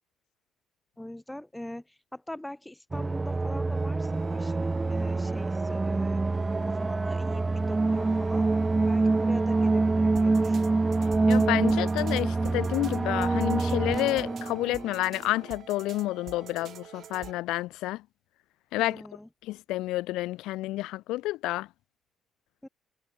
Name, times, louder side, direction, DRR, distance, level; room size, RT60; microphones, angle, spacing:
voice 1, 1.0-6.2 6.6-8.5 8.8-11.0 18.8-19.3 22.6-22.7, left 1 dB, 5° left, 2.1 m, -43 dB
sound 1, 2.9-14.9, right 3 dB, 20° right, 0.4 m, -26 dB
sound 2, 3.5-17.3, right 9 dB, 60° right, 2.8 m, -48 dB
voice 2, 11.3-18.0 18.7-19.0 19.4-21.7, left 17 dB, 90° left, 0.4 m, -29 dB
cardioid pair, 85°, 0 cm